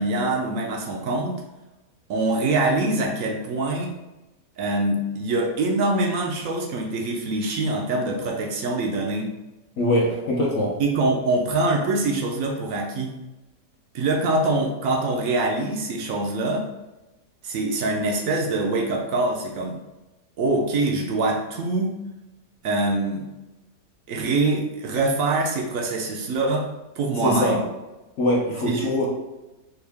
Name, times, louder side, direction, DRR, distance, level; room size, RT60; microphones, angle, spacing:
voice 1, 0.0-1.4 2.1-4.0 4.6-9.3 10.8-13.1 13.9-16.7 17.4-19.8 20.4-22.0 22.6-23.3 24.1-26.7 27.0-27.6 28.7-29.1, right 2 dB, 65° right, 1 dB, 0.8 m, -24 dB
voice 2, 9.8-10.7 27.2-27.6 28.2-29.1, left 1 dB, 55° left, -3 dB, 0.9 m, -22 dB
4.5 x 2.3 x 3.3 m, 1.0 s
omnidirectional pair, 1.8 m